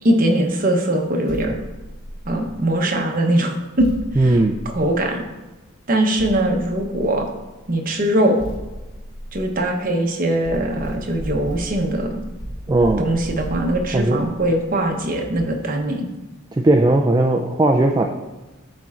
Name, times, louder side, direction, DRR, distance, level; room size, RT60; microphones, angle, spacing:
voice 1, 0.0-1.6 2.2-3.9 4.1-4.4 4.7-5.2 5.9-7.3 7.7-8.4 9.3-12.2 13.0-16.1, right 1 dB, 45° right, 2 dB, 0.9 m, -21 dB
sound 1, 1.3-2.8 3.8-5.4 6.2-7.5 8.4-10.0 10.4-15.7, equal, 80° left, 1.8 m, -35 dB
voice 2, 4.2-4.6 12.7-13.1 13.9-14.2 16.5-18.1, right 2 dB, 20° right, 2 dB, 0.3 m, -17 dB
11.5 x 4.3 x 2.4 m, 1.1 s
head